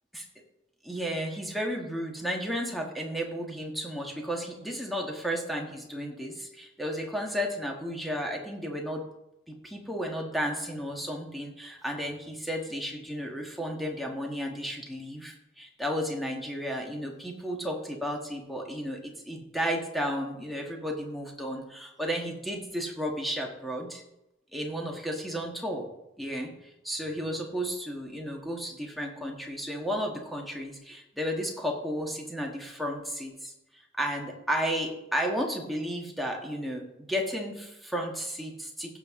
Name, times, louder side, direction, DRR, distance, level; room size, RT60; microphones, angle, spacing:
voice 1, 0.8-9.0 9.5-24.0 24.5-25.9 26.2-26.5 26.8-33.5 33.9-39.0, equal, ahead, 1 dB, 1.5 m, -33 dB
16.0 x 7.0 x 3.7 m, 0.89 s
head